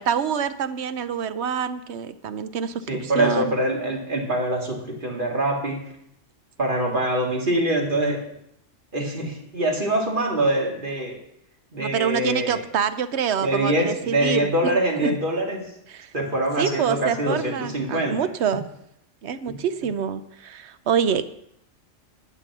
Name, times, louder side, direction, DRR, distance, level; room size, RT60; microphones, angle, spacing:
voice 1, 0.0-3.5 11.8-15.2 15.9-16.1 16.6-18.6 19.2-21.2, right 7 dB, 65° right, 12 dB, 1.0 m, -26 dB
voice 2, 2.9-5.8 6.6-8.2 8.9-11.2 11.7-12.6 13.4-15.7 16.1-18.2 19.5-19.6, right 1 dB, 40° right, 0 dB, 2.4 m, -24 dB
11.5 x 8.3 x 6.0 m, 0.76 s
omnidirectional pair, 1.3 m